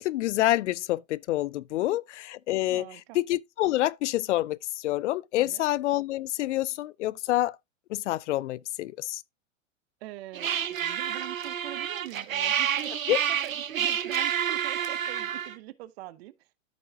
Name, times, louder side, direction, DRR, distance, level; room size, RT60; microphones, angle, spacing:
voice 1, 0.0-2.8 3.1-7.6 7.9-9.2 13.1-13.2, left 15 dB, 65° left, 0.5 m, -27 dB
voice 2, 2.7-3.2 5.4-5.6 10.0-16.4, right 16 dB, 50° right, 0.8 m, -43 dB
sound 1, 10.3-15.6, right 9 dB, 90° right, 0.8 m, -29 dB
13.5 x 5.5 x 2.3 m
hypercardioid pair, 110°, 39 cm